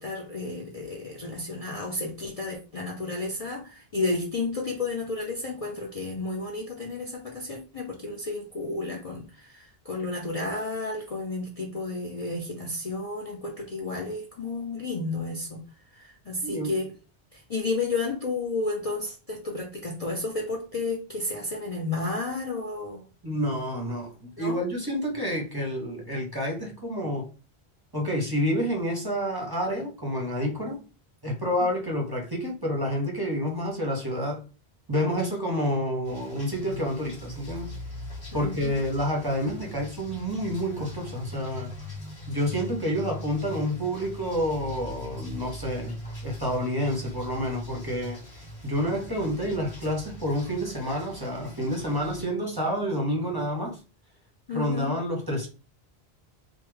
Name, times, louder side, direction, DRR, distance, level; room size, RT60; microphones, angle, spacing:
voice 1, 0.0-15.6 15.9-16.9 17.3-23.4 24.4-24.6 38.3-38.8 54.5-55.0, left 3 dB, 45° left, 0.5 m, -32 dB
voice 2, 23.2-27.3 27.9-30.8 31.2-34.4 34.9-37.7 38.3-41.8 42.3-45.9 46.2-48.2 48.6-53.8 54.5-55.5, equal, 25° right, 0.6 m, -29 dB
sound 1, 36.0-52.2, left 1 dB, 30° left, 1.6 m, -41 dB
3.4 x 2.1 x 3.1 m
omnidirectional pair, 1.1 m